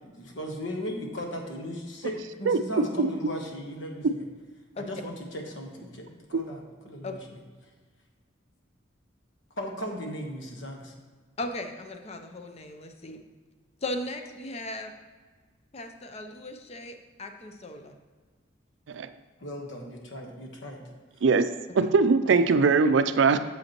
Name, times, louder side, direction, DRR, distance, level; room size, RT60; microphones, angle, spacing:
voice 1, 0.1-4.2 4.7-7.2 9.6-10.9 19.4-20.9, equal, 70° left, 2 dB, 1.1 m, -37 dB
voice 2, 11.4-13.2 13.8-14.9 15.7-18.0 21.8-21.9, left 1 dB, 35° left, 6 dB, 0.6 m, -37 dB
voice 3, 21.8-23.4, right 4 dB, 70° right, 11 dB, 0.4 m, -21 dB
7.9 x 7.1 x 2.9 m, 1.4 s
head